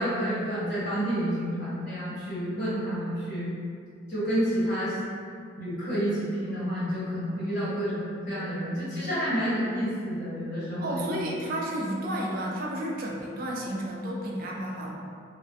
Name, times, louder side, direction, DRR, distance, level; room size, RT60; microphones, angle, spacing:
voice 1, 0.0-3.5 4.1-5.0 5.6-11.2, equal, 55° left, -13 dB, 1.1 m, -29 dB
voice 2, 10.8-15.0, right 1 dB, 45° right, -2 dB, 0.4 m, -32 dB
2.2 x 2.2 x 2.6 m, 2.2 s
head